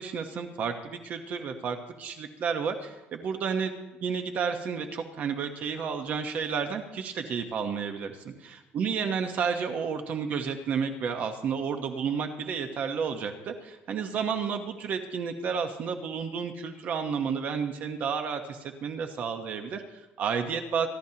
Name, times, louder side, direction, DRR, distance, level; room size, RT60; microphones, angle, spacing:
voice 1, 0.0-3.7 4.0-20.9, right 6 dB, 40° right, 6 dB, 1.1 m, -31 dB
26.5 x 12.5 x 2.9 m, 1.1 s
cardioid pair, 175°, 4 cm